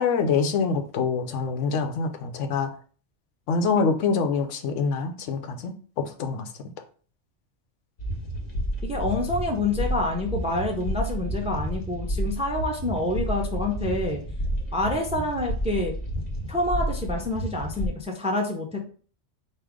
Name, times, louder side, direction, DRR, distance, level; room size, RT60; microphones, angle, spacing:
voice 1, 0.0-2.7 3.5-6.5, left 5 dB, 85° left, 6 dB, 1.0 m, -25 dB
sound 1, 8.0-17.9, equal, 40° left, 0.8 m, -30 dB
voice 2, 8.8-14.2 14.7-15.9 16.5-18.9, left 2 dB, 10° right, 1 dB, 0.4 m, -27 dB
4.7 x 2.5 x 3.6 m, 0.42 s
omnidirectional pair, 1.2 m